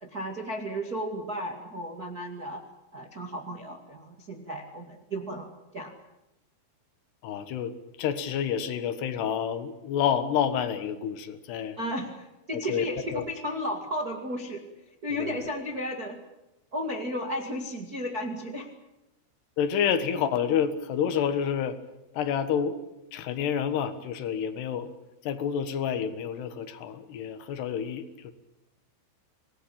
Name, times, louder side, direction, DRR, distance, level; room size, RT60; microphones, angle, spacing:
voice 1, 0.0-2.6 2.9-5.5 5.7-5.9 11.8-14.6 15.0-16.2 16.7-18.7, equal, 60° right, 3 dB, 0.9 m, -34 dB
voice 2, 7.2-11.8 12.7-12.9 13.1-13.2 15.1-15.4 19.6-21.8 22.1-22.8 23.1-24.9 25.2-28.3, left 8 dB, 65° left, 10 dB, 3.2 m, -29 dB
26.5 x 20.0 x 8.7 m, 0.94 s
omnidirectional pair, 5.8 m